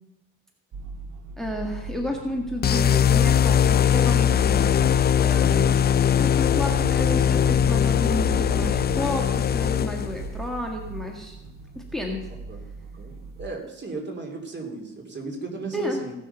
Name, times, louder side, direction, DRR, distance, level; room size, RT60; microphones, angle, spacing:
sound 1, 0.7-13.5, right 3 dB, 70° right, 1.0 m, -37 dB
voice 1, 1.4-4.6 5.2-5.8 6.1-11.4 11.8-12.2 15.7-16.0, left 1 dB, ahead, 1 dB, 1.6 m, -31 dB
sound 2, 2.6-10.3, left 9 dB, 35° left, 0.4 m, -20 dB
voice 2, 5.4-5.8 12.5-12.6 12.9-16.1, right 3 dB, 35° right, 1 dB, 2.9 m, -35 dB
16.0 x 6.4 x 5.5 m, 0.98 s
cardioid pair, 90°, 30 cm